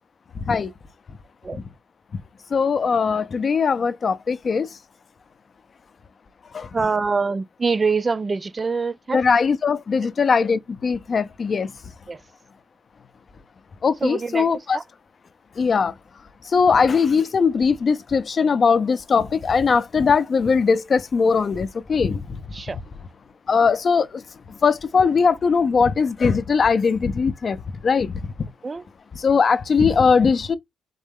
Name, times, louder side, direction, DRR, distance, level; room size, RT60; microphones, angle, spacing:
voice 1, 2.5-4.7 6.5-6.7 9.1-11.7 13.8-14.8 15.6-15.9 16.5-22.4 23.5-24.1 24.6-27.6 27.8-28.2 29.2-30.6, left 5 dB, 40° left, 0.5 m, -20 dB
voice 2, 6.7-9.2 12.1-12.2 14.0-14.8 22.5-22.8 28.6-28.8, right 4 dB, 30° right, 0.3 m, -24 dB
4.0 x 2.7 x 3.6 m
cardioid pair, 90°, 0 cm